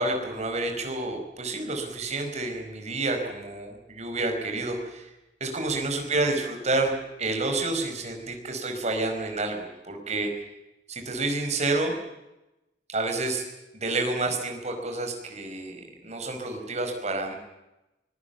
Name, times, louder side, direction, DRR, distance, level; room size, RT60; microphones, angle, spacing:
voice 1, 0.0-5.1 5.4-6.9 7.2-10.3 10.9-11.9 12.9-13.5 13.7-17.4, right 2 dB, 40° right, 4 dB, 5.2 m, -29 dB
24.5 x 22.0 x 7.1 m, 0.96 s
head